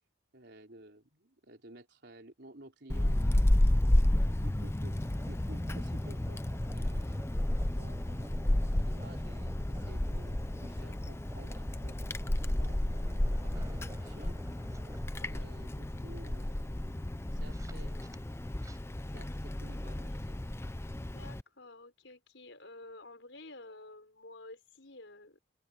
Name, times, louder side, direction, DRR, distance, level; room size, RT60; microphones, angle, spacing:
voice 1, 0.3-3.5 4.0-4.9 5.2-7.2 7.7-12.0 12.4-14.4 15.3-16.9 17.3-18.1 19.1-20.5, right 1 dB, 65° right, 4.5 m, -54 dB
Wind, 2.9-21.4, left 1 dB, 15° left, 0.5 m, -32 dB
sound 1, 5.0-18.8, right 1 dB, 20° right, 5.9 m, -54 dB
voice 2, 21.0-25.4, left 2 dB, 75° left, 5.3 m, -51 dB
open air
head